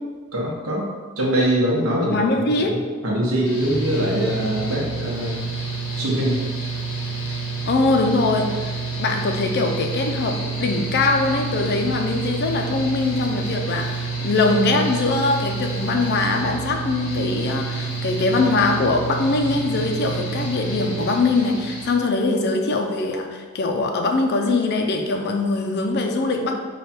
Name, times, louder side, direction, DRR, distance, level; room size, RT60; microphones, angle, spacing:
voice 1, 0.3-0.8 1.2-5.4 6.0-6.4, right 1 dB, 80° right, -4 dB, 0.9 m, -23 dB
voice 2, 2.1-2.7 7.7-26.5, left 3 dB, 50° left, 4 dB, 0.4 m, -22 dB
Mechanical fan, 3.4-21.9, right 3 dB, 85° left, 0.8 m, -28 dB
3.3 x 2.3 x 4.2 m, 1.5 s
head